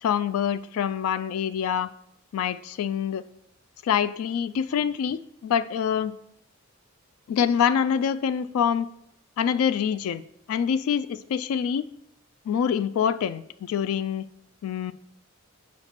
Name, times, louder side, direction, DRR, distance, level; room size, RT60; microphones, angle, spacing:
voice 1, 0.0-1.9 2.3-3.2 3.8-6.1 7.3-8.9 9.4-10.2 10.5-11.9 12.5-14.2 14.6-14.9, left 8 dB, 85° left, 15 dB, 0.3 m, -25 dB
4.4 x 4.3 x 5.7 m, 0.75 s
head